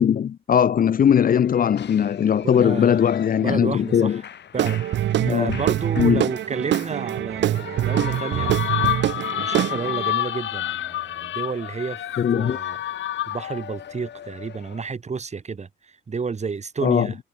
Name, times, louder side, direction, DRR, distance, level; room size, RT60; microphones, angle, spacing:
voice 1, 0.0-4.2 5.2-5.6 6.0-6.2 12.2-12.6 16.8-17.1, left 8 dB, 45° left, 0.7 m, -19 dB
Shout / Cheering, 1.0-14.9, left 9 dB, 60° left, 7.1 m, -40 dB
voice 2, 2.4-3.0 3.4-4.2 4.5-8.5 9.3-12.8 13.3-17.2, right 5 dB, 35° right, 4.0 m, -31 dB
Guitar / Drum, 4.5-10.1, right 12 dB, 65° right, 0.7 m, -24 dB
sound 1, 7.9-13.6, left 13 dB, 80° left, 1.5 m, -29 dB
cardioid pair, 90°, 20 cm